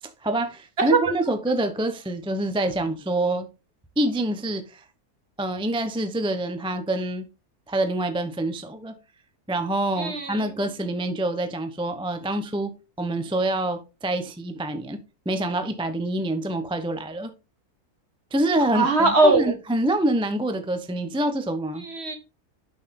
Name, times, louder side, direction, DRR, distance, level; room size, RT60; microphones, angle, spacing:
voice 1, 0.2-3.5 4.0-4.8 5.4-7.3 7.7-8.9 9.5-12.7 13.0-15.0 15.2-17.3 18.3-21.8, right 1 dB, 5° right, 0.6 m, -26 dB
voice 2, 10.0-10.5 18.7-19.4 21.8-22.1, right 2 dB, 45° right, 2.0 m, -20 dB
9.1 x 6.4 x 3.7 m
omnidirectional pair, 1.6 m